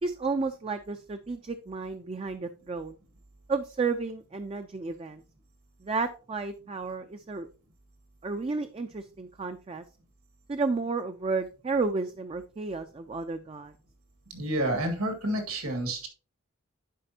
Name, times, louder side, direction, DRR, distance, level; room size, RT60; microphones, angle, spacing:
voice 1, 0.0-3.0 3.5-5.2 5.8-7.5 8.2-9.8 10.5-13.7, right 4 dB, 25° right, 7 dB, 0.4 m, -32 dB
voice 2, 14.3-16.1, right 1 dB, 75° right, 4 dB, 1.9 m, -29 dB
11.0 x 5.0 x 2.8 m, 0.36 s
head